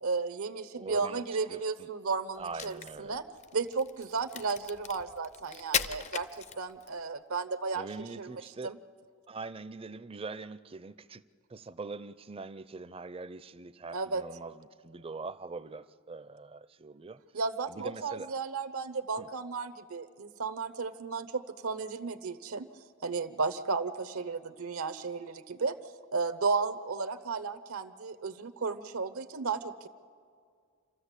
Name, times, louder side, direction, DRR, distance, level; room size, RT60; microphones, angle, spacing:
voice 1, 0.0-3.2 3.5-6.3 6.6-7.9 8.2-8.3 8.6-8.8 13.9-14.2 17.3-22.7 23.0-25.7 26.1-29.9, right 4 dB, 80° right, 0.8 m, -34 dB
voice 2, 0.7-1.2 1.5-1.9 2.4-3.2 7.7-8.7 9.3-11.2 11.5-17.2 17.7-18.3 19.2-19.3, right 4 dB, 25° right, 0.5 m, -43 dB
Crack, 2.4-7.0, left 7 dB, 30° left, 0.5 m, -37 dB
28.0 x 13.5 x 8.2 m
head